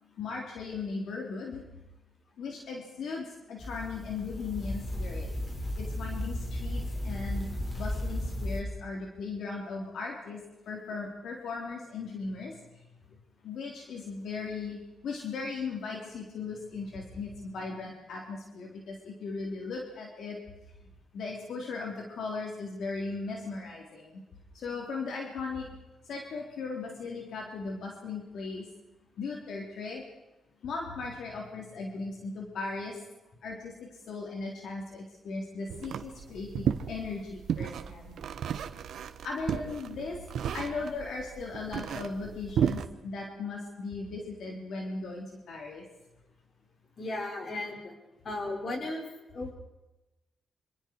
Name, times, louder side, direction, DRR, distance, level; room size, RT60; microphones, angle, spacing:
voice 1, 0.2-1.6 2.4-5.3 5.8-7.5 7.8-12.9 13.4-20.4 21.1-24.2 24.5-25.7 26.0-28.6 29.2-30.0 30.6-33.0 33.4-38.2 39.2-45.8, left 4 dB, 80° left, -1 dB, 4.1 m, -38 dB
sound 1, 3.6-8.6, left 1 dB, 35° left, 5.8 m, -34 dB
sound 2, 35.7-42.9, right 8 dB, 80° right, 1.3 m, -34 dB
voice 2, 47.0-47.9 48.2-49.0 49.3-49.5, left 2 dB, 50° left, 1 dB, 6.3 m, -35 dB
26.5 x 26.5 x 4.9 m, 1.0 s
cardioid pair, 100°, 0 cm